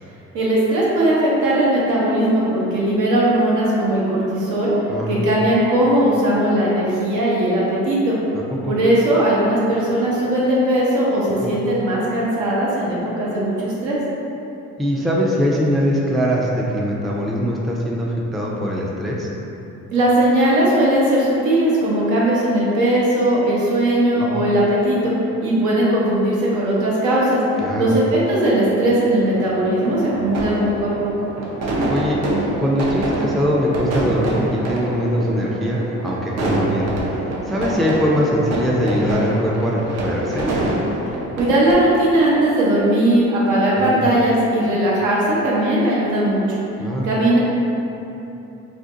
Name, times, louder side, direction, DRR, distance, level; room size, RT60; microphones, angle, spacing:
voice 1, 0.3-4.7 5.1-8.2 8.7-14.0 19.9-25.1 25.4-31.1 41.3-46.4 47.0-47.4, right 1 dB, 80° right, -6 dB, 0.9 m, -18 dB
voice 2, 4.9-5.2 8.3-8.8 11.4-11.5 14.8-19.3 24.1-24.4 27.6-28.0 31.9-32.2 32.6-36.9 37.5-40.5 43.8-44.0 46.8-47.1, equal, ahead, -3 dB, 0.3 m, -22 dB
sound 1, 29.2-41.7, right 1 dB, 60° right, 0.6 m, -26 dB
2.5 x 2.4 x 3.7 m, 3.0 s
cardioid pair, 90°, 30 cm